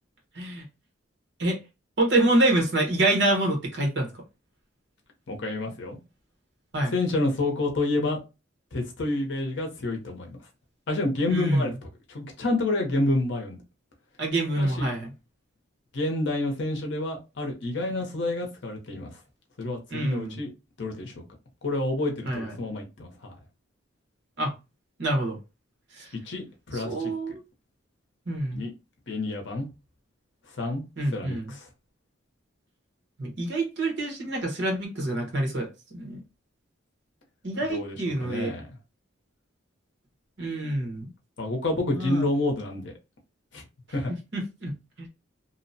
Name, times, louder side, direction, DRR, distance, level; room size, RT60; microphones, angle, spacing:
voice 1, 2.0-4.1 6.7-6.9 11.3-11.7 14.2-15.1 19.9-20.4 22.3-22.6 24.4-24.5 25.0-25.4 25.9-26.1 26.7-27.4 28.3-28.6 31.0-31.5 33.2-36.2 37.4-38.5 40.4-41.1 41.9-42.3 44.3-44.7 45.0-45.1, right 1 dB, 60° right, 1.0 m, -26 dB
voice 2, 5.3-6.0 6.8-8.2 8.7-10.4 10.9-11.7 12.1-13.6 14.6-14.9 15.9-19.2 19.6-20.5 20.8-21.2 21.6-23.3 26.1-27.4 28.5-28.7 29.1-29.7 30.6-30.8 31.1-31.7 37.7-38.7 41.4-42.9 43.5-43.6 43.9-44.1, left 2 dB, 60° left, 0.7 m, -29 dB
2.7 x 2.1 x 2.6 m
head